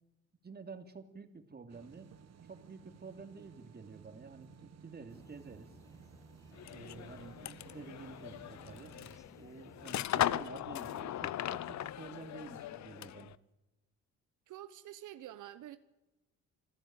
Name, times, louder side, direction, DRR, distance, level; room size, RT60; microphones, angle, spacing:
voice 1, 0.4-2.1 2.5-5.7 6.7-8.9 9.3-13.3, right 4 dB, 30° right, 2.8 m, -50 dB
sound 1, 1.7-9.2, right 7 dB, 60° right, 1.7 m, -57 dB
sound 2, 5.1-10.1, left 1 dB, 10° left, 1.4 m, -60 dB
sound 3, 6.6-13.3, left 12 dB, 65° left, 0.9 m, -38 dB
voice 2, 14.5-15.8, right 13 dB, 80° right, 1.1 m, -48 dB
27.5 x 15.0 x 9.0 m
cardioid pair, 90°, 30 cm